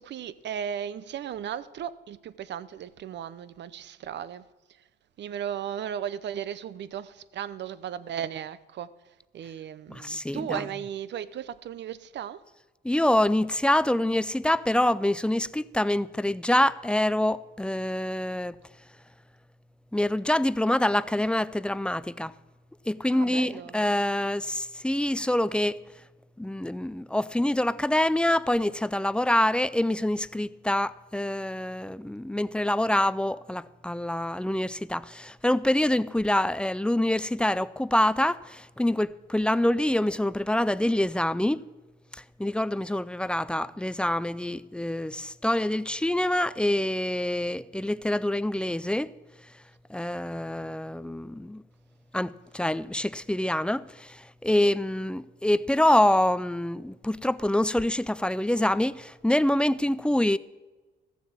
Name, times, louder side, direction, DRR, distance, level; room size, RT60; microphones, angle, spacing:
voice 1, 0.0-4.4 5.2-8.9 9.3-12.4 23.1-23.8, right 9 dB, 60° right, 0.7 m, -36 dB
voice 2, 9.9-10.6 12.8-18.6 19.9-22.3 22.9-25.8 26.4-41.6 42.1-49.1 49.9-51.6 52.1-60.4, left 1 dB, 5° left, 0.4 m, -26 dB
14.0 x 7.2 x 7.3 m
cardioid pair, 90°, 20 cm